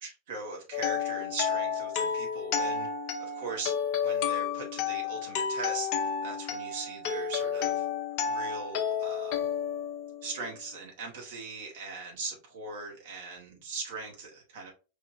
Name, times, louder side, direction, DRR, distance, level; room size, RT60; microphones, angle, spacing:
voice 1, 0.0-2.9 3.2-7.9 8.2-9.4 10.2-14.7, right 3 dB, 55° right, 2.0 m, -40 dB
sound 1, 0.7-10.6, left 7 dB, 45° left, 0.7 m, -31 dB
4.4 x 3.7 x 2.8 m
figure-of-eight pair, 90°, 0 cm